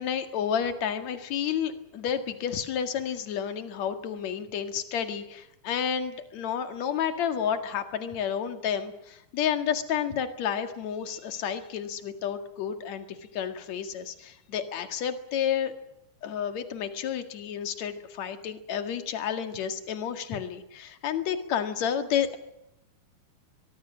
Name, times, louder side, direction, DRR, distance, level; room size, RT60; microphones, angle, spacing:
voice 1, 0.0-15.7 16.2-22.4, left 8 dB, 50° left, 8 dB, 2.5 m, -31 dB
23.0 x 23.0 x 6.4 m, 0.84 s
omnidirectional pair, 5.2 m